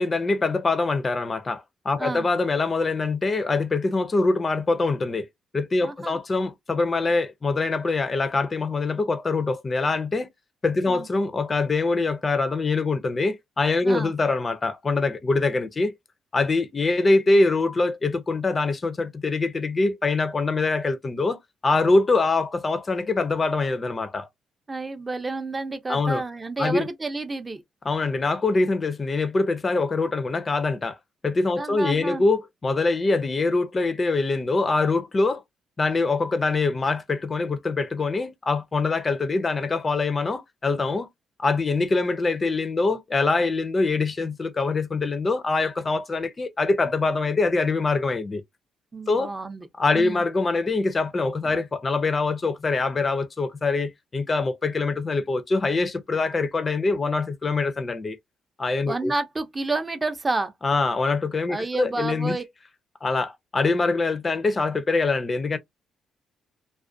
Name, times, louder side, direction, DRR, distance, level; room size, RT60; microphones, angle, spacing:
voice 1, 0.0-5.3 5.5-10.3 10.6-15.9 16.3-24.3 25.9-26.2 26.6-26.9 27.8-31.0 31.2-35.4 35.8-41.1 41.4-48.4 49.1-49.3 49.8-58.2 58.6-59.1 60.6-62.4 63.0-65.6, left 3 dB, 30° left, 0.4 m, -24 dB
voice 2, 5.8-6.2 10.9-11.1 13.8-14.1 24.7-27.6 31.6-32.2 48.9-49.7 49.9-50.2 51.4-51.6 58.9-60.5 61.5-62.4, right 3 dB, 25° right, 0.5 m, -30 dB
2.3 x 2.1 x 2.5 m
cardioid pair, 90°, 0 cm